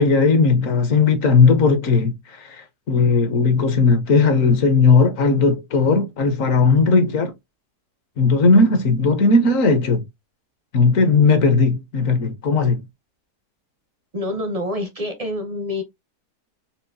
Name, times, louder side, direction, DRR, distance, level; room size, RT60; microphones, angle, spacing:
voice 1, 0.0-7.3 8.2-10.0 10.7-12.8, left 4 dB, 60° left, 1.1 m, -17 dB
voice 2, 14.1-15.8, left 1 dB, 45° right, 0.5 m, -27 dB
5.5 x 2.5 x 2.6 m
omnidirectional pair, 1.7 m